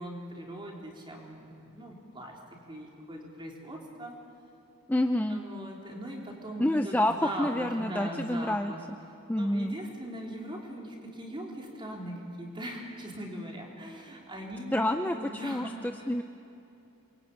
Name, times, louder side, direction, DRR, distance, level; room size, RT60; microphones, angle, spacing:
voice 1, 0.0-4.2 5.3-8.8 9.4-14.9 15.1-16.1, right 1 dB, 20° right, -1 dB, 4.0 m, -40 dB
voice 2, 4.9-5.4 6.6-8.7 9.3-9.8 14.7-15.7 16.1-16.2, left 1 dB, 10° left, 6 dB, 0.5 m, -28 dB
28.0 x 23.0 x 8.8 m, 2.9 s
head